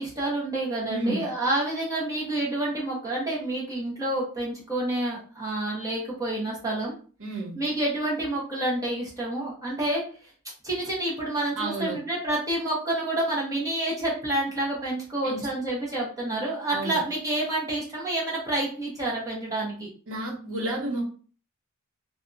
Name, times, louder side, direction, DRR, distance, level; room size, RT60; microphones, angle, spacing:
voice 1, 0.0-7.0 7.5-10.0 10.6-19.9, right 1 dB, 15° right, -5 dB, 1.0 m, -28 dB
voice 2, 0.9-1.2 7.2-7.6 11.6-12.0 15.2-15.5 16.7-17.0 20.1-21.0, right 2 dB, 65° right, -2 dB, 1.0 m, -31 dB
2.7 x 2.2 x 2.6 m, 0.41 s
head